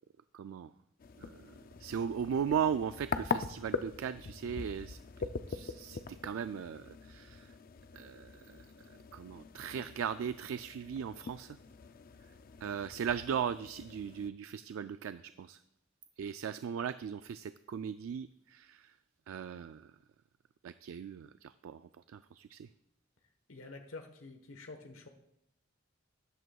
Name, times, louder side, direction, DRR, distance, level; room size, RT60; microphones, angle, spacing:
voice 1, 0.3-0.7 1.2-1.4 1.8-7.5 7.9-8.6 9.1-11.5 12.6-15.6 16.2-18.9 19.3-19.8 20.6-21.8 22.1-22.7, right 7 dB, 80° right, 12 dB, 0.3 m, -38 dB
sound 1, 1.0-14.3, left 4 dB, 45° left, 0.4 m, -43 dB
voice 2, 23.5-25.1, left 3 dB, 80° left, 5 dB, 1.2 m, -48 dB
13.5 x 11.0 x 2.3 m, 0.81 s
head